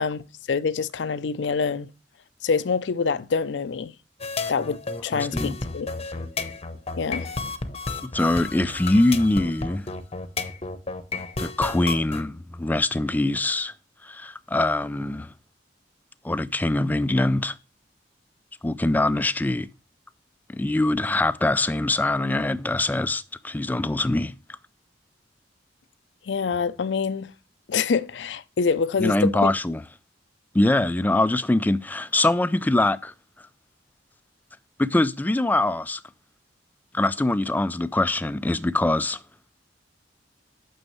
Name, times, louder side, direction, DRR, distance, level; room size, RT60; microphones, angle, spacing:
voice 1, 0.0-1.9 2.4-3.9 4.5-5.9 7.0-7.3 26.3-27.3 27.7-29.5, left 5 dB, 80° left, 0.5 m, -26 dB
sound 1, 4.2-12.2, left 3 dB, 35° left, 0.8 m, -32 dB
voice 2, 5.2-5.6 8.0-9.9 11.4-13.7 14.0-15.3 16.2-17.5 18.6-19.7 20.5-24.3 29.0-29.8 30.5-33.1 34.8-36.0 36.9-39.2, left 2 dB, 10° left, 0.3 m, -23 dB
9.2 x 6.2 x 3.0 m
head